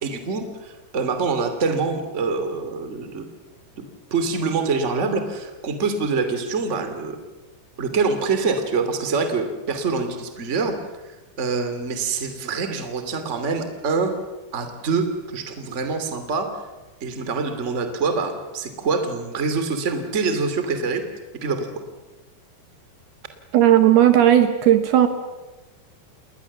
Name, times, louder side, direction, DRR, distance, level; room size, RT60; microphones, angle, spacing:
voice 1, 0.0-3.3 3.8-3.9 4.1-7.2 7.8-10.8 11.4-14.1 14.5-16.5 17.0-21.0 21.4-21.7, right 4 dB, 20° right, 7 dB, 2.1 m, -25 dB
voice 2, 23.5-25.1, right 11 dB, 70° right, 9 dB, 2.9 m, -15 dB
30.0 x 20.0 x 7.3 m, 1.1 s
omnidirectional pair, 5.1 m